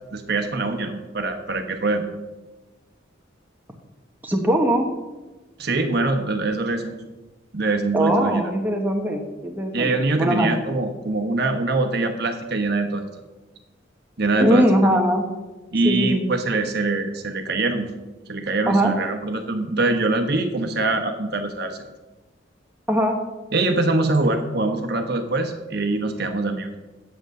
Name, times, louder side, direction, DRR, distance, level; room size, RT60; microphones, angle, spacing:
voice 1, 0.1-2.0 5.6-7.0 7.5-8.4 9.7-13.0 14.2-14.7 15.7-17.9 18.3-21.8 23.5-26.7, right 2 dB, 55° right, 5 dB, 1.1 m, -23 dB
voice 2, 4.2-4.9 7.9-10.5 14.4-15.3 15.8-16.2 18.7-18.9 22.9-23.2, equal, 10° right, 1 dB, 1.1 m, -21 dB
8.0 x 7.9 x 6.4 m, 1.1 s
head